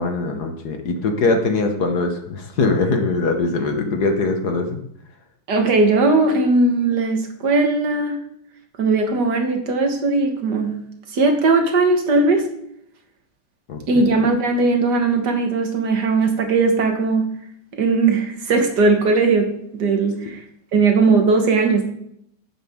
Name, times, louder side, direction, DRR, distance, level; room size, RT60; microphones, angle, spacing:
voice 1, 0.0-4.8 13.7-13.8, left 3 dB, 60° left, 4 dB, 1.5 m, -21 dB
voice 2, 5.5-8.2 8.8-10.8 11.1-12.5 13.9-17.3 17.7-20.4 20.7-21.9, right 3 dB, 60° right, 4 dB, 1.8 m, -18 dB
11.0 x 8.2 x 3.6 m, 0.73 s
omnidirectional pair, 2.1 m